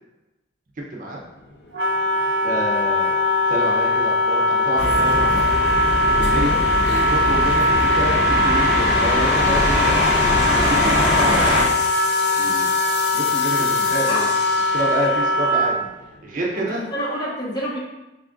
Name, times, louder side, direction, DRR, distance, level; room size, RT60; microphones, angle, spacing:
voice 1, 0.9-1.2 2.4-3.2 3.5-5.5 6.1-6.6 7.1-10.0 10.6-11.9 12.4-12.8 13.1-14.2 14.7-15.7 16.2-16.8, right 1 dB, 45° right, -2 dB, 0.6 m, -28 dB
sound 1, 1.1-16.5, left 4 dB, 65° left, 0.5 m, -35 dB
Wind instrument woodwind instrument, 1.7-15.8, left 2 dB, 85° right, 0.6 m, -20 dB
sound 2, 4.8-11.6, equal, 5° right, 0.9 m, -22 dB
voice 2, 13.8-14.3 16.5-17.8, equal, 25° left, -6 dB, 1.0 m, -28 dB
3.5 x 2.4 x 3.6 m, 0.99 s
head